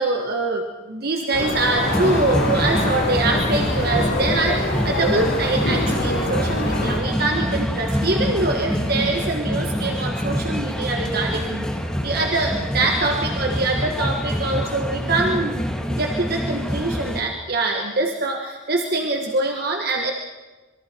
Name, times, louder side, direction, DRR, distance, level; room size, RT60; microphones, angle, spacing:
voice 1, 0.0-11.7 12.0-15.6 15.9-20.1, right 2 dB, 55° right, 2 dB, 1.6 m, -24 dB
sound 1, 1.3-7.0, left 1 dB, 85° left, 5.6 m, -25 dB
sound 2, 1.8-17.2, equal, 5° left, 2.0 m, -26 dB
26.0 x 23.5 x 4.6 m, 1.2 s
head